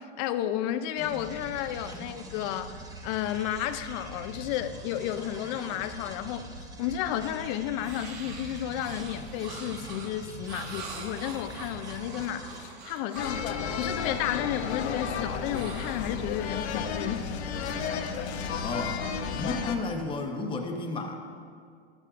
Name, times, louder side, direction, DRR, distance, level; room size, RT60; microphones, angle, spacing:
voice 1, 0.0-6.5 6.8-17.3, left 11 dB, 40° left, 11 dB, 0.5 m, -32 dB
sound 1, 1.0-12.6, right 2 dB, 10° right, 1.0 m, -44 dB
sound 2, 7.8-13.4 15.5-16.7, right 3 dB, 30° right, 1.9 m, -44 dB
sound 3, 13.2-19.8, left 6 dB, 75° left, 1.0 m, -32 dB
voice 2, 18.6-19.0 19.3-21.1, left 3 dB, 15° left, 2 dB, 0.9 m, -32 dB
12.5 x 12.5 x 2.5 m, 2.2 s
hypercardioid pair, 125°, 33 cm